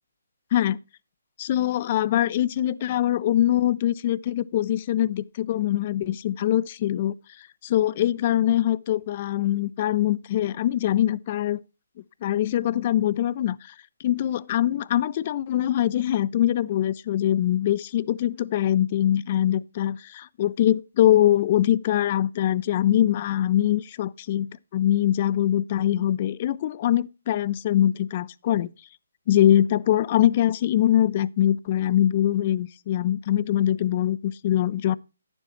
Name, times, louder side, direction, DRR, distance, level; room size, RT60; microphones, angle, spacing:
voice 1, 1.4-7.1 7.6-11.6 12.2-13.7 14.0-28.7 29.3-34.9, left 12 dB, 35° left, 0.4 m, -23 dB
9.9 x 7.2 x 4.2 m
figure-of-eight pair, 150°, 0 cm